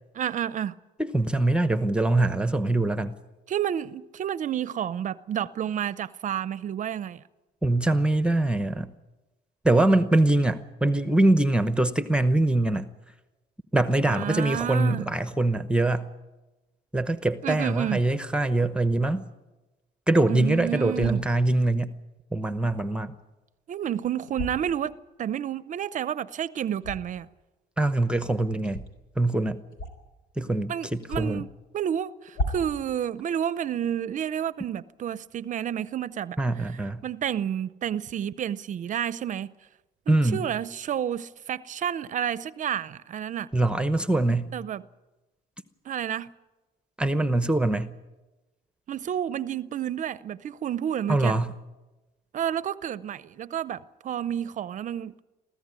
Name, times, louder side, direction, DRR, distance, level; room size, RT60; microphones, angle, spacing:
voice 1, 0.1-0.8 3.5-7.2 14.1-15.1 17.4-18.0 20.3-21.2 23.7-27.3 30.7-36.6 37.0-39.5 40.1-43.5 44.5-44.8 45.8-46.3 48.9-51.4 52.3-55.1, right 9 dB, 50° right, 0.6 m, -30 dB
voice 2, 1.0-3.1 7.6-8.9 9.6-12.9 13.7-16.1 16.9-19.2 20.1-21.9 22.3-23.1 27.8-28.8 29.2-29.6 30.4-31.4 36.4-37.0 40.1-40.5 43.5-44.5 47.0-47.9 51.1-51.5, right 2 dB, 5° right, 0.9 m, -23 dB
sound 1, 20.9-21.3 24.3-24.6 26.8-27.2 28.6-28.9 29.7-30.1 30.4-30.5 31.0-31.5 32.3-32.8, left 1 dB, 85° left, 3.9 m, -33 dB
23.0 x 15.0 x 9.7 m
cardioid pair, 110°, 17 cm